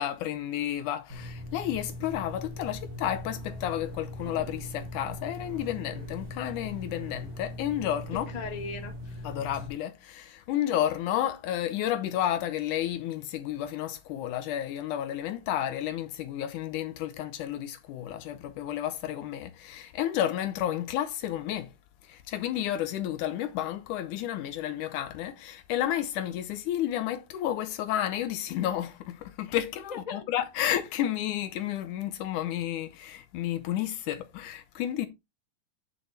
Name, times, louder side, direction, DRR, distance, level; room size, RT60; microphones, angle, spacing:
voice 1, 0.0-8.3 9.2-21.7 22.0-35.1, left 11 dB, 75° left, 2.0 m, -31 dB
sound 1, 1.1-9.7, left 1 dB, 30° right, 2.6 m, -40 dB
voice 2, 8.1-9.3 29.9-30.2, left 4 dB, 35° left, 0.6 m, -38 dB
8.8 x 6.8 x 3.3 m
omnidirectional pair, 4.0 m